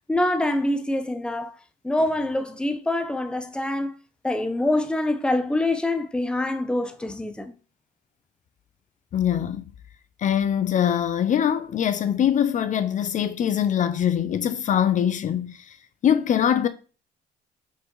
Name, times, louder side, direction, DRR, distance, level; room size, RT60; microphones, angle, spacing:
voice 1, 0.1-1.5 1.8-3.9 4.2-7.5, left 1 dB, 5° left, 0.9 m, -25 dB
voice 2, 9.1-9.7 10.2-15.8 16.0-16.7, left 9 dB, 50° left, 0.7 m, -23 dB
6.1 x 5.4 x 4.8 m
cardioid pair, 110°, 17 cm